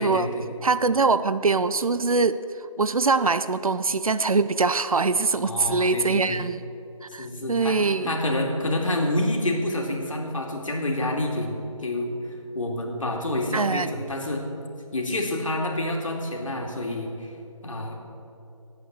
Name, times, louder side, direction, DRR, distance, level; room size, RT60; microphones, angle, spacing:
voice 1, 0.0-0.5 5.4-6.5 7.2-7.8 8.0-12.1 12.5-14.4 14.9-17.3 17.6-18.0, left 1 dB, 65° left, 1 dB, 2.4 m, -28 dB
voice 2, 0.6-2.4 2.8-6.6 7.0-8.2 13.5-13.9, right 4 dB, 75° right, 13 dB, 0.7 m, -23 dB
12.0 x 8.5 x 7.4 m, 2.8 s
figure-of-eight pair, 165°, 18 cm